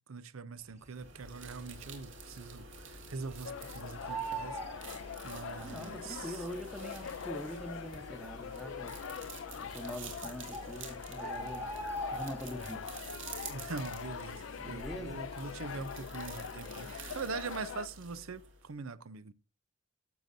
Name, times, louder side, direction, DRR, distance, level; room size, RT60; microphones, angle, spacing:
voice 1, 0.0-4.6 5.2-6.5 13.5-19.3, right 4 dB, 85° right, 0.7 m, -43 dB
sound 1, 0.9-18.7, right 2 dB, 65° right, 2.7 m, -48 dB
Bird, 1.1-1.7 2.0-2.1 2.4-3.6 3.8-5.7 6.5-6.6 7.3-7.4 7.6-7.7 8.3-8.8 9.7-9.8 10.2-10.3 10.5-12.8 13.1-13.5 13.8-15.1 15.5-15.7, right 2 dB, 35° right, 2.3 m, -41 dB
sound 2, 3.4-17.9, left 7 dB, 65° left, 0.4 m, -44 dB
voice 2, 5.6-9.0 9.6-11.7 12.1-12.8 14.6-15.2, equal, ahead, 0.9 m, -43 dB
12.0 x 7.6 x 2.6 m
head